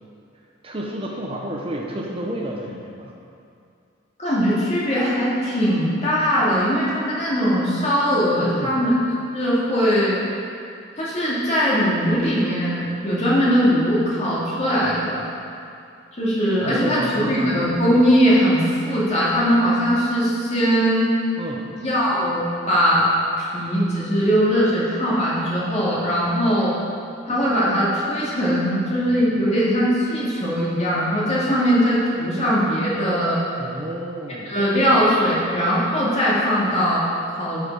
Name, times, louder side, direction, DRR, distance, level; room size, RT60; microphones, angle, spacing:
voice 1, 0.6-3.2 8.3-8.8 16.6-17.5 21.4-21.7 33.6-34.6, right 1 dB, 30° right, -1 dB, 0.7 m, -31 dB
voice 2, 4.2-8.9 9.3-10.2 11.0-15.3 16.2-21.1 21.8-23.1 23.4-26.7 27.3-33.4 34.5-37.6, equal, 35° left, -7 dB, 2.2 m, -20 dB
11.5 x 5.0 x 4.7 m, 2.5 s
head